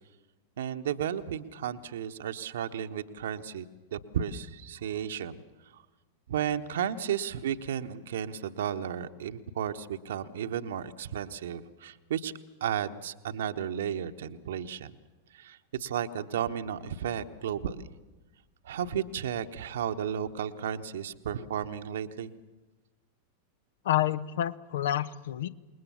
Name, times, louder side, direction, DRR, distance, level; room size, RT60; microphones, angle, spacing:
voice 1, 0.6-3.7 3.9-5.4 5.7-5.8 6.3-12.3 12.6-14.9 15.3-17.9 18.6-22.3, right 9 dB, 60° right, 8 dB, 1.1 m, -33 dB
voice 2, 23.8-25.5, left 12 dB, 60° left, 17 dB, 0.9 m, -28 dB
27.0 x 21.0 x 7.1 m, 1.1 s
figure-of-eight pair, 90°, 0 cm